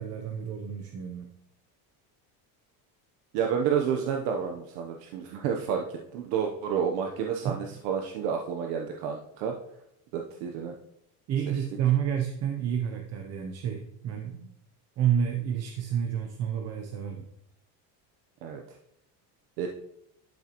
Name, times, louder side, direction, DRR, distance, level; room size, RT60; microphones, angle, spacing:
voice 1, 0.0-1.3 7.4-7.6 11.3-14.5 15.0-17.3, right 9 dB, 40° right, 4 dB, 0.7 m, -29 dB
voice 2, 3.3-9.5 10.1-10.7 18.4-18.6 19.6-19.7, right 7 dB, 90° right, 3 dB, 1.0 m, -30 dB
12.0 x 5.9 x 3.0 m, 0.79 s
cardioid pair, 165°, 41 cm